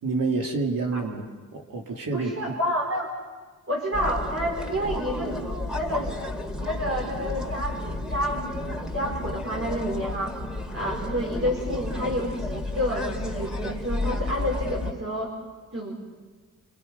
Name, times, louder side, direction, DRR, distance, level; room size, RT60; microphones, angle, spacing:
voice 1, 0.0-1.3 1.5-2.5, right 3 dB, 75° right, 1 dB, 2.8 m, -28 dB
voice 2, 2.1-3.1 3.7-6.2 6.6-10.4 10.7-15.3 15.7-15.9, equal, 40° right, -2 dB, 4.7 m, -29 dB
sound 1, 3.9-14.9, left 2 dB, ahead, 3.1 m, -32 dB
28.0 x 26.0 x 5.4 m, 1.4 s
cardioid pair, 70°, 34 cm